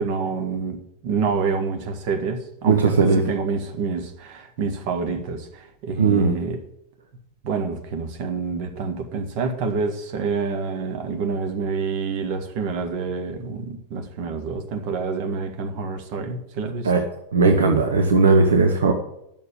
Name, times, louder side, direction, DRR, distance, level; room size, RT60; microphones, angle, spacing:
voice 1, 0.0-6.6 7.4-16.9, right 5 dB, 45° right, 6 dB, 1.7 m, -27 dB
voice 2, 2.7-3.2 6.0-6.3 16.8-17.0 17.3-18.9, right 4 dB, 65° right, 5 dB, 1.1 m, -17 dB
11.0 x 6.9 x 7.1 m, 0.80 s
figure-of-eight pair, 90°, 0 cm